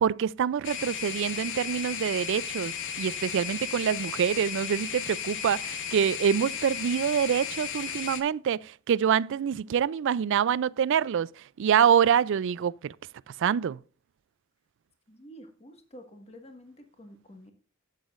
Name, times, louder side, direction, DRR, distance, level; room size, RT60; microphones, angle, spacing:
voice 1, 0.0-11.3 11.6-12.9 13.4-13.8, right 8 dB, 60° right, 0.3 m, -26 dB
sound 1, 0.6-8.2, left 7 dB, 60° left, 1.2 m, -35 dB
voice 2, 15.1-17.5, equal, 30° left, 1.5 m, -49 dB
12.0 x 8.2 x 2.5 m
head